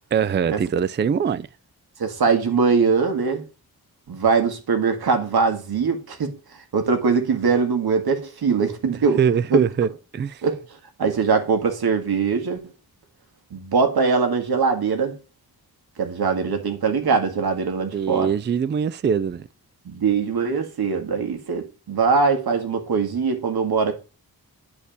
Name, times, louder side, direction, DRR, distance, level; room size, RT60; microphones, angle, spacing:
voice 1, 0.1-1.5 9.2-10.4 17.8-19.5, right 7 dB, 30° right, 0.4 m, -22 dB
voice 2, 2.0-3.4 4.1-6.4 6.7-9.2 9.5-9.7 10.4-10.6 11.0-12.6 13.5-15.2 16.0-18.3 19.9-23.9, right 5 dB, 75° right, 1.9 m, -22 dB
9.8 x 4.4 x 7.0 m
wide cardioid pair, 100°, 38 cm